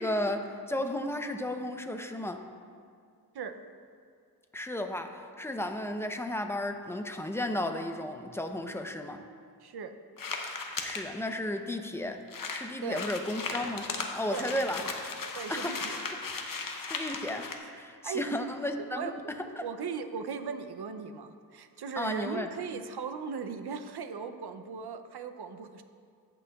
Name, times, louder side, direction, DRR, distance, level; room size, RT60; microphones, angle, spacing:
voice 1, 0.0-2.5 4.5-9.2 10.8-12.2 12.5-14.8 15.5-15.8 16.9-19.7 22.0-22.5, left 1 dB, 5° left, 6 dB, 0.6 m, -34 dB
voice 2, 9.6-9.9 12.8-13.0 14.3-14.5 15.3-16.0 18.0-18.2 18.8-19.1 19.6-25.8, right 6 dB, 75° right, 8 dB, 0.6 m, -38 dB
sound 1, 10.2-11.0 11.7-11.8 12.0-12.1 12.3-17.6, left 4 dB, 55° left, 0.8 m, -37 dB
14.0 x 6.2 x 2.3 m, 2.2 s
cardioid pair, 50°, 39 cm